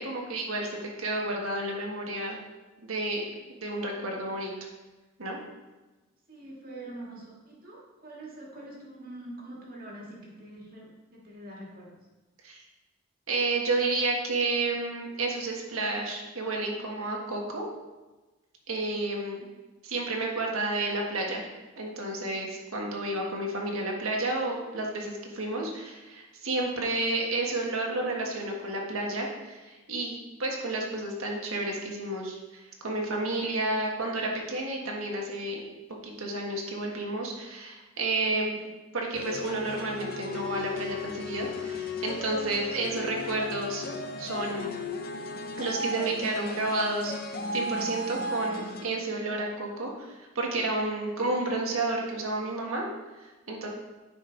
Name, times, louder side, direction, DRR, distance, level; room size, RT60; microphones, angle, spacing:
voice 1, 0.0-2.4 2.8-3.2 3.6-4.5 5.2-5.4 12.4-12.6 13.3-17.7 18.7-19.4 19.8-21.4 21.8-35.6 36.0-38.5 38.9-43.8 44.2-44.8 45.6-47.1 47.5-52.9 53.5-53.7, right 2 dB, 90° right, 0 dB, 1.6 m, -31 dB
voice 2, 6.3-12.0, right 1 dB, 45° right, -3 dB, 1.8 m, -44 dB
sound 1, 39.1-48.9, left 2 dB, 45° left, 0.6 m, -35 dB
9.5 x 5.3 x 3.9 m, 1.2 s
head